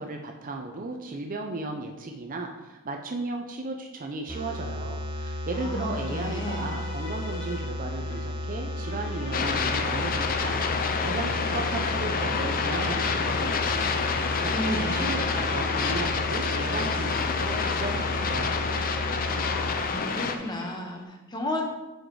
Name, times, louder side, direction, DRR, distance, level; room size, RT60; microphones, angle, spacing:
voice 1, 0.0-13.9 14.4-18.8, right 3 dB, 40° right, 3 dB, 0.6 m, -35 dB
sound 1, 4.3-19.7, left 1 dB, 25° right, 0.9 m, -34 dB
sound 2, 5.5-21.0, left 2 dB, 65° left, 1.2 m, -45 dB
voice 2, 5.5-6.8 14.1-15.2 19.6-21.6, left 1 dB, 20° left, 1 dB, 1.0 m, -34 dB
sound 3, 9.3-20.4, left 5 dB, 40° left, 0.5 m, -28 dB
6.3 x 4.9 x 4.7 m, 1.1 s
head